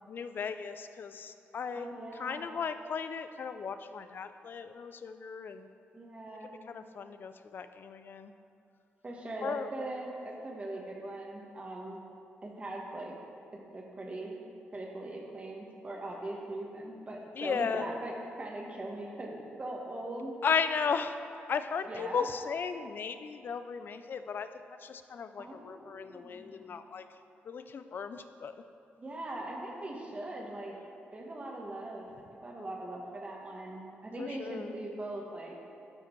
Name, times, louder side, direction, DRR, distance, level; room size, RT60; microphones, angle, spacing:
voice 1, 0.0-1.9 2.2-5.7 6.7-8.3 9.4-9.7 17.4-17.9 20.4-21.2 21.5-27.1 27.5-28.5 34.2-34.7, left 6 dB, 55° left, 11 dB, 0.4 m, -35 dB
voice 2, 1.7-2.6 5.9-6.6 9.0-12.0 12.4-13.1 13.7-14.4 14.7-20.3 21.8-22.3 25.4-26.9 29.0-30.7 31.1-35.6, right 1 dB, 30° right, -1 dB, 1.5 m, -41 dB
12.0 x 5.1 x 4.6 m, 2.6 s
cardioid pair, 100°, 4 cm